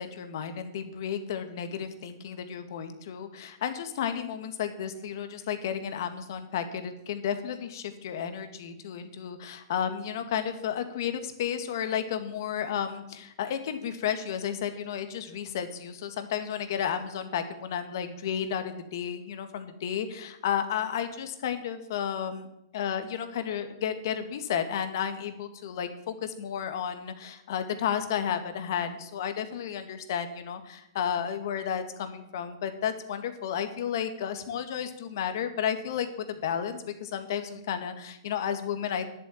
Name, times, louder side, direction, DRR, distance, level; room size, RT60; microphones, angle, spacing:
voice 1, 0.0-22.5 22.7-39.1, left 8 dB, 60° left, 8 dB, 2.0 m, -32 dB
11.0 x 8.2 x 8.8 m, 0.83 s
hypercardioid pair, 155°, 2 cm